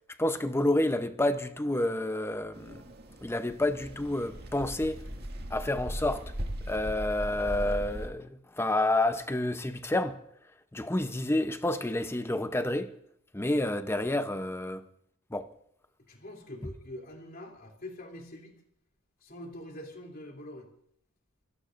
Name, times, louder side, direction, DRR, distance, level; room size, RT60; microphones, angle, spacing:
voice 1, 0.2-2.8 3.2-5.0 5.5-6.2 6.7-10.2 10.7-12.9 13.3-14.8 15.3-15.5, left 1 dB, 10° left, 0.7 m, -29 dB
sound 1, 2.5-8.1, equal, 50° right, 2.1 m, -38 dB
voice 2, 16.1-18.6 19.2-20.7, left 1 dB, 45° left, 3.0 m, -44 dB
28.5 x 17.0 x 2.6 m
head